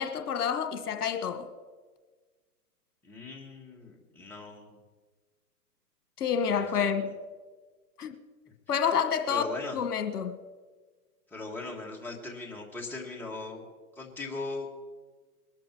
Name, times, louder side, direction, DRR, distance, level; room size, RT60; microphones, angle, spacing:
voice 1, 0.0-1.5 6.2-7.1 8.0-8.2 8.7-9.4 9.7-10.4, left 7 dB, 70° left, 1.4 m, -28 dB
voice 2, 3.0-4.8 6.5-6.9 9.3-9.8 11.3-13.7 13.9-14.7, left 3 dB, 5° left, 1.6 m, -39 dB
21.5 x 13.0 x 4.5 m
hypercardioid pair, 140°, 47 cm